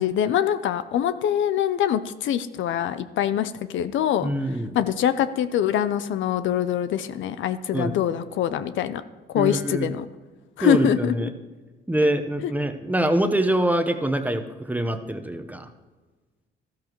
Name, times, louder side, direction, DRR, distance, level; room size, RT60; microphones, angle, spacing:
voice 1, 0.0-4.3 4.7-9.0 9.3-10.1 10.6-11.3 12.4-12.5, left 10 dB, 75° left, 12 dB, 0.6 m, -24 dB
voice 2, 4.2-4.7 7.7-7.9 9.3-9.9 10.6-11.3 11.9-15.7, right 1 dB, 10° right, 8 dB, 0.9 m, -24 dB
13.0 x 13.0 x 3.1 m, 1.3 s
cardioid pair, 90°, 20 cm